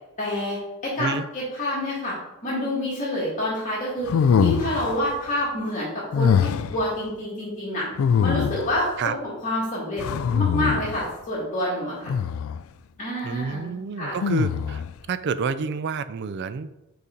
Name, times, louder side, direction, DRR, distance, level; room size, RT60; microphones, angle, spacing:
voice 1, 0.2-0.6 0.8-2.1 2.4-4.1 4.4-5.9 6.2-7.9 8.2-8.9 9.2-10.0 10.3-12.1 13.0-14.1, left 1 dB, 35° left, -7 dB, 1.7 m, -27 dB
sound 1, 4.1-5.0 6.1-6.8 8.0-8.8 10.0-11.0 12.1-12.6 14.2-14.9, left 7 dB, 70° left, 0.3 m, -23 dB
voice 2, 13.2-14.8 15.1-16.7, right 5 dB, 50° right, 13 dB, 0.3 m, -28 dB
5.4 x 4.0 x 5.0 m, 0.97 s
head